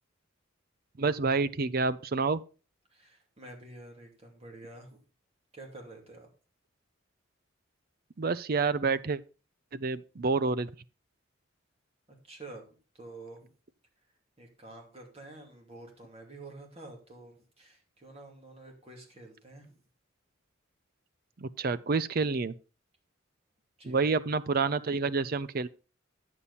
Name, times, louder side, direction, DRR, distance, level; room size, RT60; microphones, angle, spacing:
voice 1, 1.0-2.4 8.2-9.2 9.7-10.7 21.4-22.5 23.9-25.7, right 4 dB, 45° right, 0.5 m, -28 dB
voice 2, 2.9-5.0 5.5-6.3 12.1-13.5 14.4-19.8 23.8-24.1, right 2 dB, 30° right, 2.7 m, -49 dB
9.8 x 7.3 x 4.1 m
head